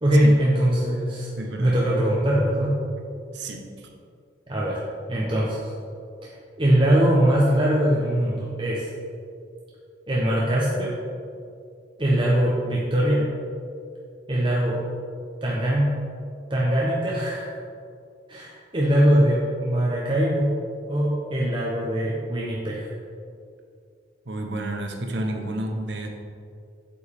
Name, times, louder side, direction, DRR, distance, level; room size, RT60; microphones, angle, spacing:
voice 1, 0.0-1.3 1.6-2.8 4.5-4.8 5.1-5.6 6.2-6.3 6.6-8.9 10.1-10.9 12.0-13.3 14.3-14.8 15.4-15.9 16.5-17.5 18.3-20.6 20.9-22.9, right 1 dB, 25° right, -5 dB, 0.9 m, -21 dB
voice 2, 1.4-1.8 3.3-3.9 24.3-26.1, right 1 dB, 65° right, 3 dB, 1.0 m, -31 dB
8.2 x 7.7 x 3.6 m, 2.4 s
head